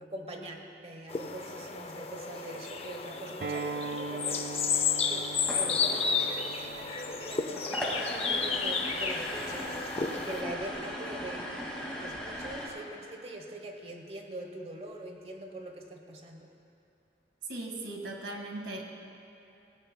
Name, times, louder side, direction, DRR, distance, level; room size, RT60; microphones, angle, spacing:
voice 1, 0.0-4.8 5.1-9.8 10.1-16.5, right 1 dB, 35° right, 3 dB, 1.0 m, -43 dB
sound 1, 1.1-10.4, left 5 dB, 35° left, 0.5 m, -32 dB
Acoustic guitar, 3.4-8.6, right 4 dB, 55° right, 0.5 m, -41 dB
sound 2, 5.3-12.7, equal, 5° left, 2.1 m, -39 dB
voice 2, 17.5-18.8, right 2 dB, 85° right, 0 dB, 1.8 m, -38 dB
19.0 x 16.5 x 2.2 m, 2.9 s
head